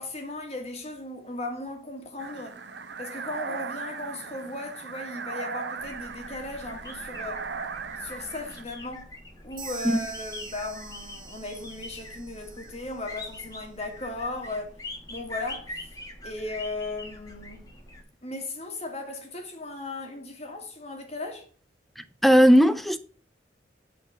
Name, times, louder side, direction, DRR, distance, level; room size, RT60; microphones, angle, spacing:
voice 1, 0.0-2.6 3.0-7.4 8.0-9.1 9.4-14.7 15.1-15.7 16.2-17.7 18.2-21.4, left 2 dB, 35° left, 1.6 m, -36 dB
sound 1, 2.2-8.6, right 5 dB, 75° right, 0.8 m, -38 dB
sound 2, 5.8-18.0, left 2 dB, 20° left, 1.3 m, -43 dB
sound 3, 9.6-13.3, right 7 dB, 45° right, 2.0 m, -45 dB
voice 2, 22.0-23.0, equal, ahead, 0.5 m, -18 dB
8.6 x 4.2 x 6.2 m
head